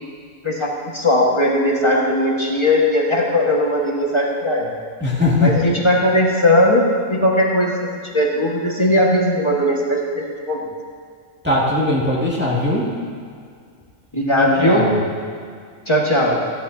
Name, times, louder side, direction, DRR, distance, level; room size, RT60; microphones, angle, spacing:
voice 1, 0.4-4.7 5.4-10.7 14.1-14.9 15.9-16.4, left 1 dB, 20° left, -3 dB, 1.6 m, -18 dB
voice 2, 5.0-5.8 11.4-12.9 14.4-15.0, left 2 dB, 10° right, -6 dB, 2.1 m, -19 dB
16.0 x 14.5 x 2.8 m, 2.1 s
omnidirectional pair, 1.4 m